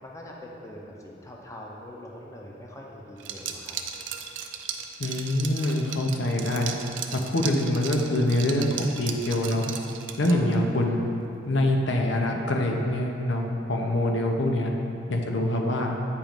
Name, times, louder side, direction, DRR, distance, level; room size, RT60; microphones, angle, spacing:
voice 1, 0.0-3.8 10.3-10.9, left 1 dB, 15° left, -2 dB, 0.6 m, -43 dB
Liquid, 3.2-10.6, right 8 dB, 90° right, 0.5 m, -36 dB
voice 2, 5.0-6.7 7.1-8.7 9.0-9.6 10.2-11.0 11.4-14.7 15.1-16.0, left 1 dB, 75° left, 1 dB, 0.7 m, -25 dB
8.5 x 3.0 x 5.1 m, 2.7 s
head